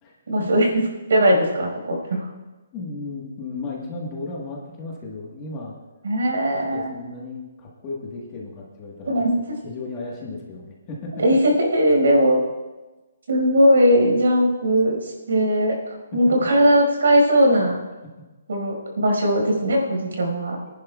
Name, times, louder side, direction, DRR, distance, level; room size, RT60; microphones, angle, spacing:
voice 1, 0.3-0.7 1.1-2.3 6.0-7.0 9.1-9.4 11.2-12.4 13.3-17.7 18.5-20.6, equal, 75° right, 0 dB, 5.2 m, -19 dB
voice 2, 2.7-5.7 6.4-9.1 9.6-11.1 16.2-16.3, left 3 dB, 15° left, -3 dB, 1.4 m, -35 dB
25.5 x 10.5 x 2.4 m, 1.2 s
hypercardioid pair, 180°, 0 cm